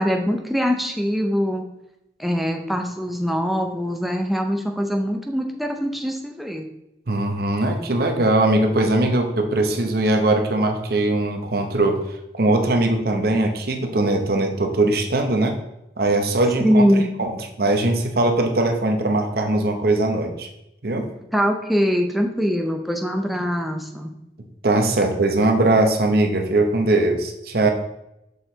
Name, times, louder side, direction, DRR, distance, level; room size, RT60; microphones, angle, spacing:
voice 1, 0.0-1.6 2.2-6.7 16.6-17.1 21.3-24.1, equal, ahead, 2 dB, 0.5 m, -22 dB
voice 2, 7.1-15.6 16.0-16.8 17.2-17.3 17.6-20.5 20.8-21.1 24.6-27.7, right 2 dB, 55° right, 5 dB, 0.8 m, -20 dB
6.6 x 3.9 x 4.4 m, 0.87 s
head